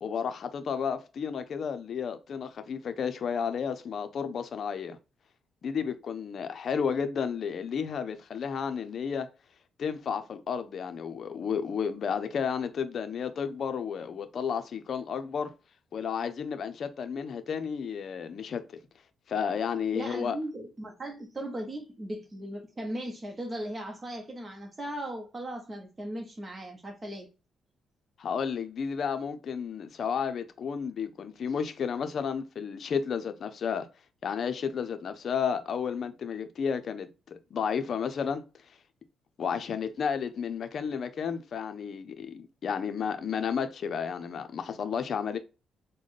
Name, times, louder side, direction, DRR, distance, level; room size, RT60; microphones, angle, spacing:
voice 1, 0.0-5.0 5.6-9.3 9.8-15.5 15.9-18.6 19.3-20.4 28.2-33.9 34.2-38.4 39.4-45.4, left 6 dB, 55° left, 0.6 m, -32 dB
voice 2, 19.9-27.3, right 1 dB, 25° right, 0.9 m, -37 dB
4.0 x 2.2 x 3.2 m
cardioid pair, 90°, 0 cm